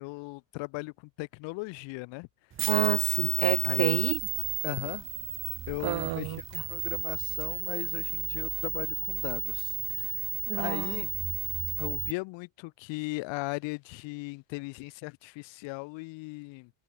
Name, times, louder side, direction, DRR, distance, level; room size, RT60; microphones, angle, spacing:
voice 1, 0.0-2.3 3.6-3.9 4.6-5.1 5.7-10.3 10.6-11.1 11.8-16.7, left 26 dB, 85° left, 4.1 m, -38 dB
sound 1, 2.6-12.1, right 10 dB, 30° right, 1.3 m, -32 dB
voice 2, 2.7-4.2 5.8-6.4 10.5-11.0, right 17 dB, 55° right, 2.7 m, -29 dB
cardioid pair, 175°, 43 cm